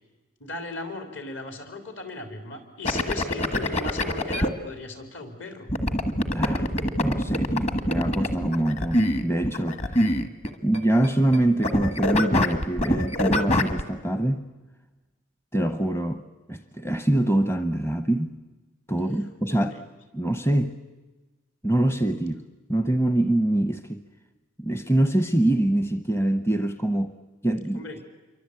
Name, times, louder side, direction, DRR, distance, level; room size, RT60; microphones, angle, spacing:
voice 1, 0.4-5.7 19.5-19.8 27.7-28.0, left 3 dB, 60° left, 6 dB, 4.5 m, -37 dB
sound 1, 2.8-4.5 5.7-11.4 11.6-13.8, left 1 dB, 30° left, 1.6 m, -24 dB
voice 2, 6.3-6.7 7.0-9.8 10.6-14.4 15.5-16.2 16.5-18.3 18.9-19.8 20.1-20.7 21.6-22.4 22.7-24.0 24.6-27.1 27.4-27.9, right 1 dB, 10° left, 10 dB, 0.8 m, -24 dB
27.5 x 24.0 x 8.5 m, 1.2 s
head